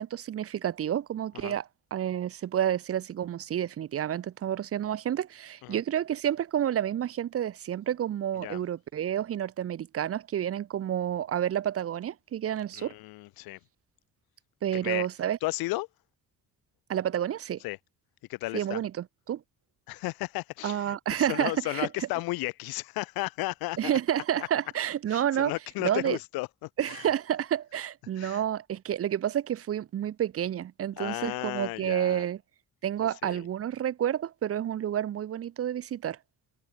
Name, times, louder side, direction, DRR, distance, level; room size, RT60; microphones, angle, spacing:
voice 1, 0.0-1.6 1.9-12.9 14.6-15.4 16.9-17.6 18.5-18.9 19.3-19.4 20.6-21.9 23.8-25.5 25.8-26.2 26.8-32.4 32.8-36.2, right 10 dB, 40° right, 0.5 m, -29 dB
voice 2, 12.7-13.6 14.7-15.1 15.4-15.9 17.6-17.8 18.3-18.8 19.9-24.0 24.4-24.5 25.1-27.1 28.2-28.4 31.0-32.2 33.2-33.5, left 21 dB, 85° left, 0.5 m, -34 dB
cardioid pair, 95°, 36 cm